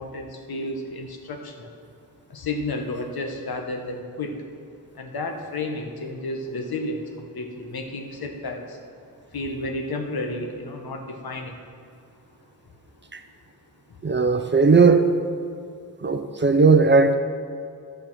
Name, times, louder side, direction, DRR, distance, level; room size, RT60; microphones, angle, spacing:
voice 1, 0.0-1.8 2.3-4.4 4.9-8.8 9.3-11.6 13.9-14.0, left 2 dB, 80° left, 4 dB, 1.2 m, -32 dB
voice 2, 14.0-15.1 16.0-17.1, right 4 dB, 30° right, 8 dB, 0.6 m, -17 dB
11.5 x 6.5 x 6.1 m, 2.4 s
wide cardioid pair, 145°, 36 cm